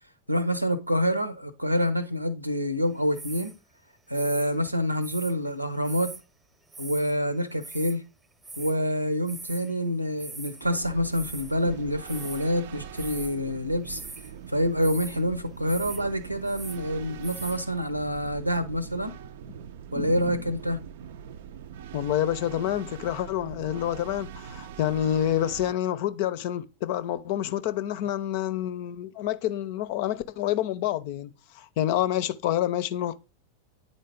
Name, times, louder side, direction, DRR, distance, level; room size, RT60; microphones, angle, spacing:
voice 1, 0.3-3.5 4.1-6.1 6.8-8.0 8.6-14.0 14.5-19.1 19.9-20.8, equal, 90° right, 0.9 m, -27 dB
sound 1, 3.1-3.6 4.1-5.3 5.8-6.2 6.7-7.2 7.4-8.0 8.4-8.8 9.3-9.8 10.0-10.7 11.1-11.6 12.1-12.5 12.9-13.4 13.9-14.3 14.8-15.2 15.6-16.0 16.3-16.8 17.2-17.6, right 3 dB, 10° right, 0.8 m, -42 dB
sound 2, 10.6-25.7, right 8 dB, 55° right, 0.5 m, -42 dB
voice 2, 21.9-33.2, left 11 dB, 50° left, 0.6 m, -28 dB
9.3 x 3.9 x 3.7 m
figure-of-eight pair, 90°, 0 cm